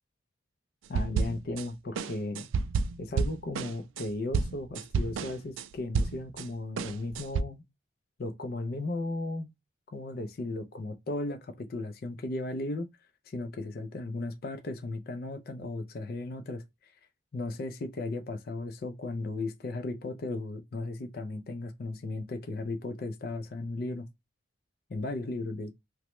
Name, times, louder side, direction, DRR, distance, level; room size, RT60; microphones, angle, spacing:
voice 1, 0.9-2.5 3.0-7.6 8.2-9.5 9.9-12.9 13.3-16.9 17.3-24.1 24.9-25.7, left 2 dB, 50° left, 0.4 m, -36 dB
sound 1, 0.9-1.7 2.0-6.5 6.8-7.4, right 5 dB, 80° right, 0.3 m, -30 dB
3.0 x 2.1 x 3.0 m
head